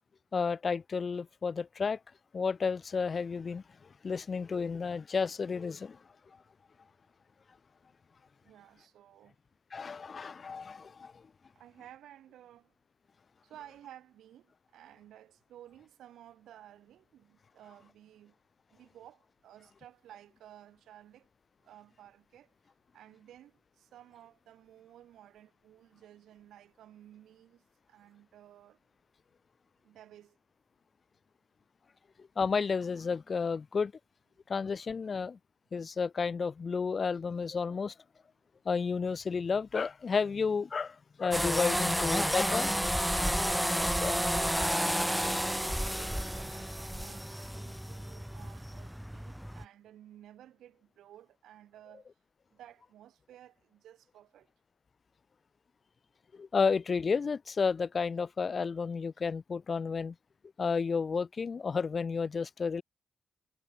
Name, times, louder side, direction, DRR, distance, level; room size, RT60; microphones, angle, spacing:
voice 1, 0.3-2.0 2.3-3.6 4.0-6.0 9.7-11.2 32.4-33.9 34.5-35.4 35.7-37.9 38.6-42.8 44.0-44.2 56.3-60.1 60.6-62.8, left 5 dB, 45° left, 1.4 m, -31 dB
voice 2, 8.4-9.4 11.5-12.7 13.4-18.4 18.7-21.3 21.6-22.5 22.9-28.8 29.8-30.4 43.3-52.1 52.5-54.5, right 12 dB, 85° right, 6.7 m, -55 dB
sound 1, 41.3-49.6, equal, 5° right, 0.5 m, -31 dB
cardioid pair, 70°, 0 cm